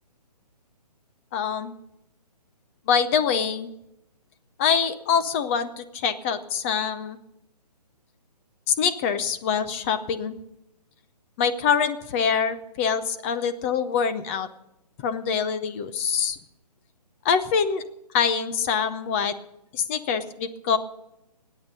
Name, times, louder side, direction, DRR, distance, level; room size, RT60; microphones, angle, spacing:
voice 1, 1.3-1.8 2.9-3.7 4.6-7.2 8.7-10.4 11.4-14.5 15.0-16.4 17.2-17.8 18.1-19.3 19.7-20.8, left 7 dB, 20° left, 11 dB, 0.6 m, -24 dB
22.5 x 9.3 x 5.3 m, 0.86 s
hypercardioid pair, 150°, 21 cm